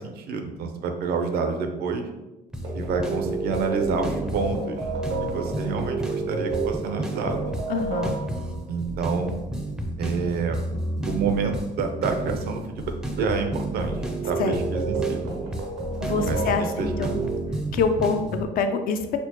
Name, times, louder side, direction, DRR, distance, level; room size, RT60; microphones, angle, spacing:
voice 1, 0.0-2.1 2.7-4.8 5.2-7.5 8.7-9.3 10.0-10.6 11.0-12.9 13.2-14.0 14.2-15.2 16.3-17.1, right 4 dB, 70° right, 5 dB, 0.5 m, -28 dB
sound 1, 2.5-18.4, right 1 dB, 5° right, 0.4 m, -32 dB
sound 2, 2.6-8.6 13.9-17.4, right 4 dB, 90° right, 0.8 m, -31 dB
voice 2, 7.7-8.2 14.4-14.6 16.0-17.2 17.7-19.2, left 5 dB, 60° left, 7 dB, 0.4 m, -25 dB
4.3 x 2.1 x 2.8 m, 1.0 s
cardioid pair, 110°, 17 cm